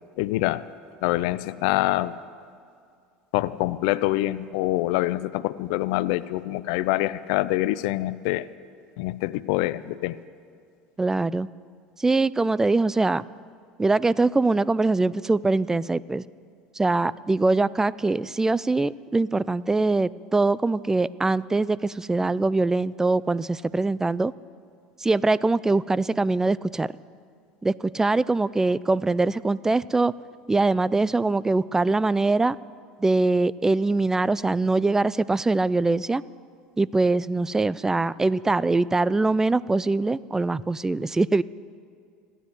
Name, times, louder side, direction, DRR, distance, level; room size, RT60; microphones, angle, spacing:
voice 1, 0.2-0.7 1.0-2.2 3.3-8.5 9.0-10.2, left 17 dB, 70° left, 16 dB, 0.4 m, -25 dB
voice 2, 11.0-11.5 12.0-13.2 13.8-16.2 16.8-24.3 25.0-26.9 27.6-30.1 30.5-32.6 33.0-36.2 36.8-41.4, right 3 dB, 15° right, 19 dB, 0.3 m, -23 dB
14.5 x 9.8 x 8.0 m, 2.3 s
hypercardioid pair, 90°, 4 cm